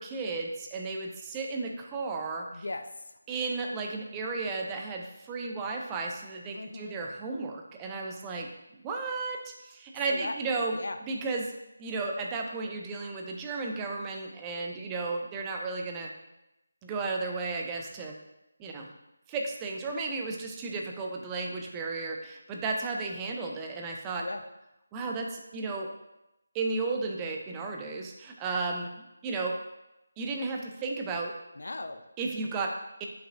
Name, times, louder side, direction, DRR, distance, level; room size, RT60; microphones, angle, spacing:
voice 1, 0.0-2.6 3.3-10.8 11.1-11.5 11.8-16.1 16.8-18.2 18.6-18.9 19.3-24.3 24.9-25.9 26.5-29.6 30.2-31.3 32.2-33.1, right 3 dB, 15° right, 1 dB, 0.5 m, -34 dB
voice 2, 2.5-3.2 6.5-7.0 10.1-10.4 10.7-11.0 24.2-24.4 31.6-32.0, left 2 dB, 60° left, 7 dB, 0.5 m, -38 dB
7.2 x 5.8 x 2.5 m, 0.91 s
figure-of-eight pair, 155°, 0 cm